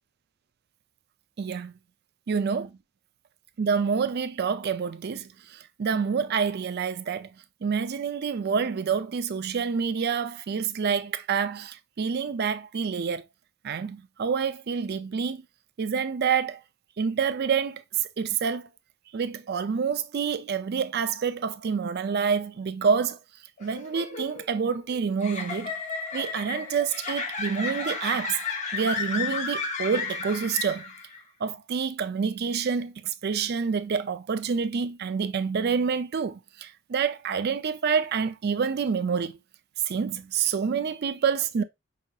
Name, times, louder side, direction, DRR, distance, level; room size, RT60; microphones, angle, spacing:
voice 1, 1.4-1.7 2.3-2.8 3.6-7.3 7.6-13.2 13.6-15.4 15.8-16.6 17.0-18.7 19.1-23.2 23.6-25.7 26.1-28.4 28.7-30.9 31.4-39.4 39.9-41.6, right 6 dB, 45° right, 0.4 m, -27 dB
sound 1, 23.6-31.2, left 4 dB, 35° left, 0.7 m, -33 dB
5.5 x 2.7 x 2.3 m
head